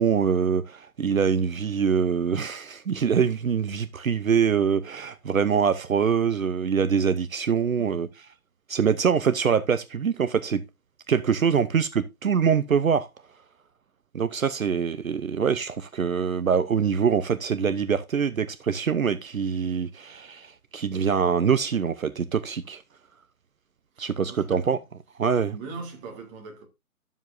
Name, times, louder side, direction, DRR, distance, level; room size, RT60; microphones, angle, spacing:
voice 1, 0.0-8.1 8.7-10.6 11.1-13.1 14.1-22.8 24.0-24.8 25.2-25.6, right 7 dB, 65° right, 0.8 m, -24 dB
voice 2, 7.8-8.1 11.5-11.7 24.0-24.8 25.5-26.7, right 4 dB, 15° right, 1.9 m, -41 dB
12.5 x 7.3 x 2.6 m
figure-of-eight pair, 135°, 43 cm